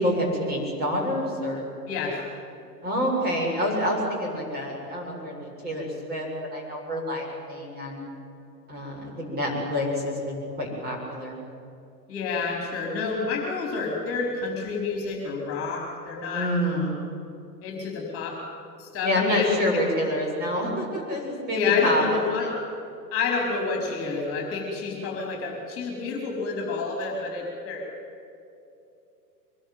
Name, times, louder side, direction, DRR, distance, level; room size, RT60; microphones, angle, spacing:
voice 1, 0.0-1.7 2.8-8.1 8.7-11.4 16.3-16.9 19.0-22.5, equal, 20° right, 0 dB, 7.4 m, -28 dB
voice 2, 1.9-2.2 12.1-16.9 17.6-18.4 18.8-19.9 21.5-22.5 23.1-27.8, left 4 dB, 25° left, 0 dB, 4.6 m, -28 dB
24.5 x 21.5 x 9.1 m, 2.7 s
figure-of-eight pair, 100°, 49 cm